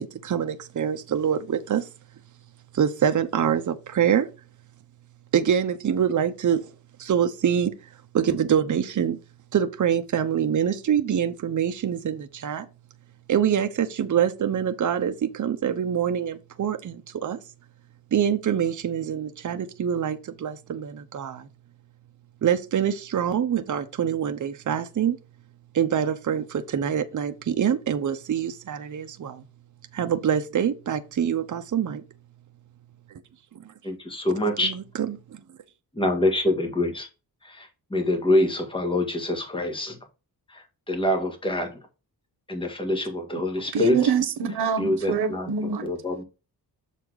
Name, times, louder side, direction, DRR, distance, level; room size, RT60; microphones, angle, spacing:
voice 1, 0.0-1.9 2.7-4.3 5.3-6.7 7.0-7.7 8.1-9.2 9.5-12.7 13.3-17.4 18.1-21.5 22.4-25.2 25.7-29.4 29.9-32.0 33.1-33.2 34.6-35.4, right 8 dB, 50° right, 0.8 m, -25 dB
voice 2, 33.8-34.7 36.0-37.1 37.4-40.0 40.5-41.8 42.5-44.1 44.8-45.5 45.8-46.2, left 1 dB, 15° left, 1.7 m, -25 dB
voice 3, 43.7-45.9, right 6 dB, 90° right, 1.1 m, -25 dB
7.1 x 4.3 x 4.7 m
wide cardioid pair, 120°, 38 cm